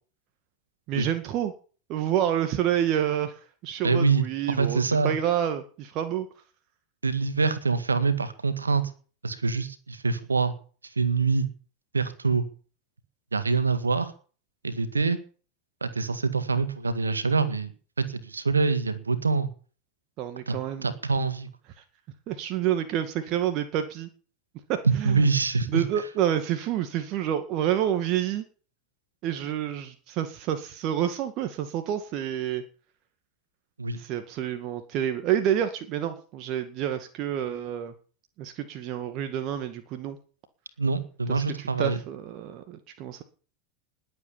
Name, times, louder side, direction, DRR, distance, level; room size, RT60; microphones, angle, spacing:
voice 1, 0.9-1.5 1.9-6.3 20.2-20.9 22.3-24.1 24.7-25.3 25.7-28.4 29.2-32.6 34.0-37.9 38.4-40.2 41.3-43.2, right 10 dB, 45° right, 7 dB, 1.9 m, -28 dB
voice 2, 3.8-4.2 4.6-5.1 7.0-8.8 9.2-10.5 11.0-11.5 11.9-12.4 13.3-14.1 14.6-15.2 15.8-17.7 18.0-19.5 20.5-20.6 20.8-21.5 24.8-25.8 33.8-34.0 40.8-42.0, right 4 dB, 85° right, 12 dB, 1.9 m, -25 dB
20.0 x 8.4 x 7.2 m, 0.40 s
figure-of-eight pair, 80°, 0 cm